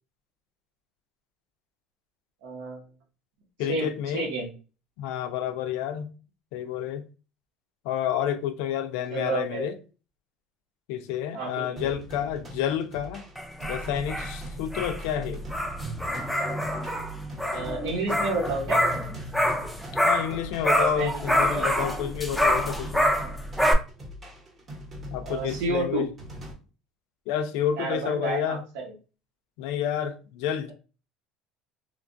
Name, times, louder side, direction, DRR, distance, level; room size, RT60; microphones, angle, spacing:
voice 1, 2.4-2.8 3.7-4.5 9.1-9.7 11.3-11.9 17.5-18.8 20.8-21.2 21.5-21.7 25.2-26.0 27.8-28.9, right 3 dB, 90° right, 1.0 m, -30 dB
voice 2, 3.6-4.3 5.0-6.1 6.5-7.0 7.8-9.7 10.9-13.2 13.7-15.4 20.0-23.1 25.1-26.1 27.3-28.6 29.6-30.7, left 9 dB, 75° left, 0.4 m, -29 dB
sound 1, 11.8-26.5, equal, 25° right, 0.8 m, -42 dB
sound 2, 13.4-20.4 20.6-23.7, equal, ahead, 0.3 m, -26 dB
3.2 x 2.2 x 2.5 m
cardioid pair, 165°, 0 cm